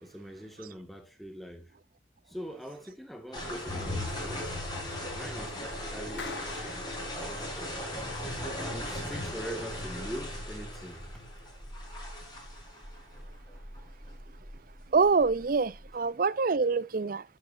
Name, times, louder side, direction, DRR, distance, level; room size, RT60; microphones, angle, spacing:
voice 1, 0.0-1.7 2.3-4.5 5.1-6.9 7.1-7.8 8.7-11.3, equal, ahead, 1.7 m, -43 dB
sound 1, 3.3-15.9, left 1 dB, 20° left, 6.3 m, -38 dB
Clapping, 6.2-7.8, left 4 dB, 70° left, 2.1 m, -44 dB
voice 2, 14.9-17.2, right 4 dB, 50° right, 0.5 m, -25 dB
12.0 x 8.6 x 2.5 m
head